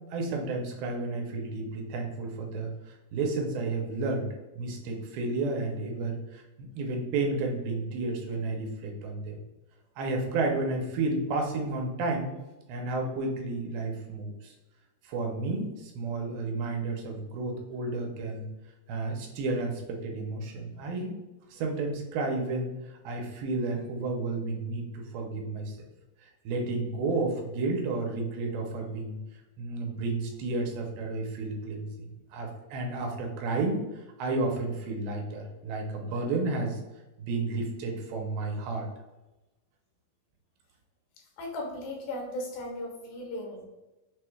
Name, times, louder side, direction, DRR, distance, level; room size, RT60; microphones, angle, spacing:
voice 1, 0.1-4.3 4.6-9.4 10.0-12.3 12.7-14.5 15.0-18.5 18.9-21.2 21.5-25.8 26.5-29.2 29.6-36.8 37.2-38.9, right 3 dB, 85° right, 2 dB, 2.7 m, -32 dB
voice 2, 41.4-43.6, left 1 dB, 75° left, 0 dB, 2.6 m, -36 dB
6.3 x 2.3 x 3.2 m, 1.0 s
omnidirectional pair, 4.3 m